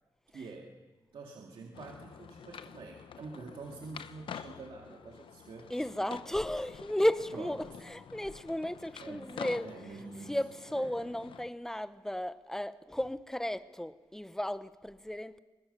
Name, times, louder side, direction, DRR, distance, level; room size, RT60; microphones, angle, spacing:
voice 1, 0.3-0.8 1.1-5.7 7.3-7.8 9.0-10.4 10.7-11.0, right 4 dB, 85° right, 2.1 m, -47 dB
sound 1, 1.7-11.5, left 7 dB, 85° left, 0.7 m, -48 dB
voice 2, 5.7-9.7 10.3-15.4, left 1 dB, 5° left, 0.9 m, -34 dB
24.5 x 20.5 x 6.7 m
wide cardioid pair, 90°, 9 cm